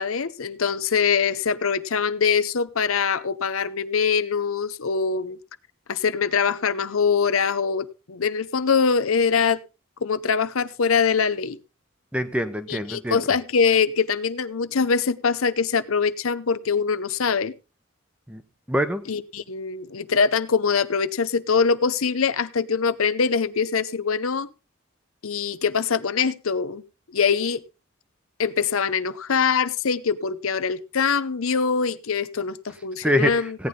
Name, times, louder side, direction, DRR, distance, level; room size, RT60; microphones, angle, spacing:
voice 1, 0.0-5.4 5.9-9.6 10.0-11.6 12.7-17.5 19.1-24.5 25.2-26.8 27.1-27.6 28.4-33.6, left 5 dB, 85° left, 0.7 m, -23 dB
voice 2, 12.1-13.2 18.3-18.4 18.7-19.0 33.0-33.7, equal, 5° right, 0.8 m, -24 dB
16.5 x 9.4 x 3.6 m
head